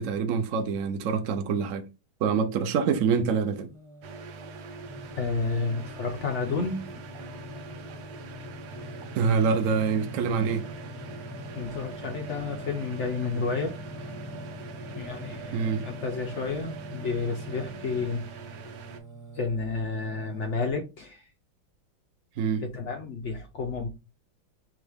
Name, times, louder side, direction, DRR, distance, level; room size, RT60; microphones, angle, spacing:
voice 1, 0.0-1.9 2.2-3.7 9.2-10.6 15.5-15.8 22.4-22.6, right 6 dB, 85° right, 0.7 m, -25 dB
Singing, 3.6-20.7, equal, 10° right, 0.6 m, -43 dB
sound 1, 4.0-19.0, right 5 dB, 65° right, 1.2 m, -44 dB
voice 2, 5.2-6.9 11.5-13.7 14.9-18.2 19.3-21.3 22.6-23.9, left 4 dB, 85° left, 0.6 m, -31 dB
6.2 x 2.3 x 3.3 m
omnidirectional pair, 2.2 m